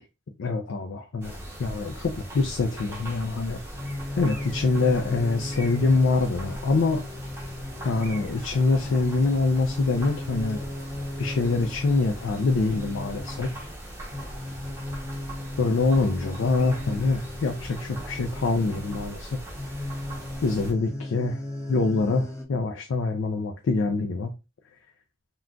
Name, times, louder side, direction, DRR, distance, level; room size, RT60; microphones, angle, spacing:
voice 1, 0.4-3.6 4.2-7.0 7.8-10.7 11.2-13.7 15.6-19.4 20.4-21.4 21.7-24.3, left 3 dB, 80° left, 0.4 m, -25 dB
sound 1, 1.2-20.7, right 1 dB, 15° right, 0.8 m, -40 dB
sound 2, 3.7-22.4, left 1 dB, 15° left, 0.5 m, -36 dB
3.7 x 2.3 x 2.2 m
head